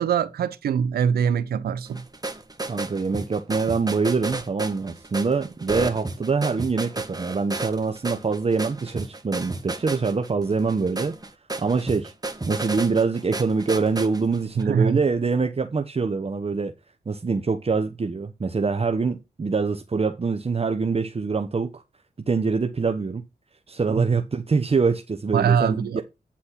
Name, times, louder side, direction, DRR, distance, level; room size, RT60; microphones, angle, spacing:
voice 1, 0.0-2.0 14.6-15.0 24.0-24.1 25.3-26.0, right 7 dB, 90° right, 0.8 m, -23 dB
sound 1, 1.9-14.6, right 2 dB, 25° right, 1.5 m, -33 dB
voice 2, 2.7-11.1 11.6-12.1 12.5-16.7 17.1-21.8 22.3-23.2 23.7-26.0, right 4 dB, 40° right, 1.0 m, -24 dB
9.9 x 4.2 x 5.8 m
cardioid pair, 50°, 16 cm